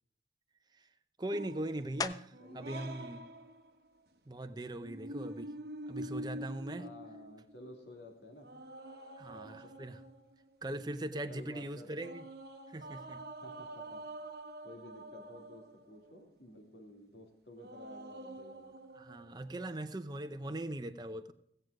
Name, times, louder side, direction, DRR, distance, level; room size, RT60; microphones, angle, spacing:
voice 1, 1.2-3.2 4.3-5.5 5.9-6.9 9.2-10.0 10.6-12.2 12.7-13.2 18.9-21.3, right 1 dB, 25° right, 9 dB, 0.6 m, -40 dB
sound 1, 1.3-4.0 4.8-7.7 8.4-10.6 12.0-16.1 17.6-19.6, right 1 dB, 60° right, 0.9 m, -47 dB
sound 2, 2.0-2.6 3.2-7.6 8.1-13.3 13.5-19.2, left 4 dB, 20° left, 0.3 m, -50 dB
voice 2, 2.4-2.9 4.7-5.1 6.8-8.5 9.3-9.8 11.3-12.1 13.4-14.0 14.6-18.8, left 1 dB, 80° left, 2 dB, 2.5 m, -53 dB
16.5 x 7.9 x 4.8 m, 0.74 s
head